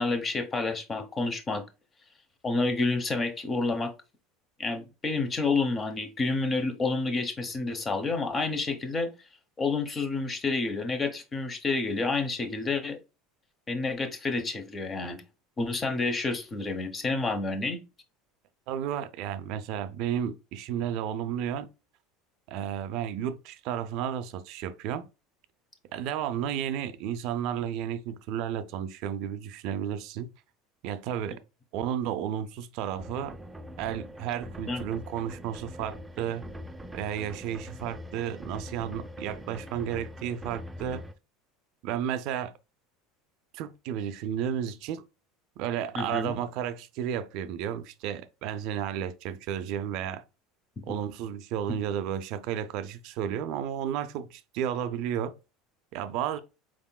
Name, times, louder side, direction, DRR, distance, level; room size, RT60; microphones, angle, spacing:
voice 1, 0.0-1.6 2.4-3.9 4.6-9.1 9.6-13.0 13.7-15.2 15.6-17.8 34.7-34.8 45.9-46.3 50.9-51.0 51.7-51.8, left 3 dB, 25° left, 0.9 m, -29 dB
voice 2, 18.7-21.7 22.5-25.1 25.9-30.3 30.8-31.4 31.7-33.4 33.8-36.5 36.9-41.0 41.8-42.5 43.5-45.1 45.6-50.2 50.9-55.4 55.9-56.4, right 9 dB, 65° right, 0.4 m, -32 dB
sound 1, 33.0-41.1, equal, 10° right, 0.5 m, -43 dB
4.6 x 3.6 x 2.2 m
supercardioid pair, 105°, 0 cm